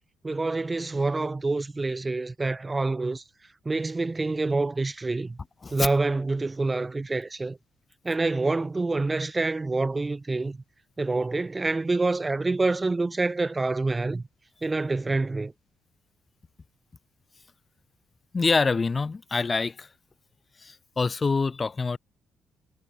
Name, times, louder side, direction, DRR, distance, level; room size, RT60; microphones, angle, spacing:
voice 1, 0.2-3.2 3.7-5.4 5.7-7.6 8.0-10.6 11.0-14.2 14.6-15.5, right 3 dB, 20° right, 2.3 m, -27 dB
voice 2, 18.3-19.9 20.6-22.0, left 4 dB, 30° left, 2.2 m, -26 dB
cardioid pair, 90°, 0 cm